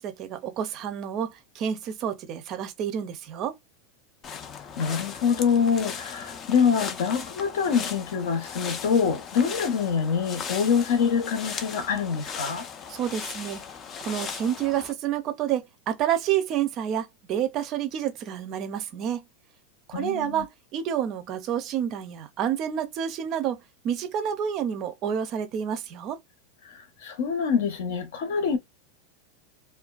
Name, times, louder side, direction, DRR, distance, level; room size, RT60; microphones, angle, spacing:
voice 1, 0.0-3.6 12.9-13.6 14.0-19.2 19.9-26.2, right 9 dB, 35° right, 0.5 m, -29 dB
sound 1, 4.2-14.9, left 6 dB, 25° left, 0.3 m, -38 dB
voice 2, 4.8-12.7 19.9-20.4 26.7-28.6, left 6 dB, 70° left, 0.8 m, -25 dB
2.4 x 2.2 x 2.3 m
supercardioid pair, 155°, 0 cm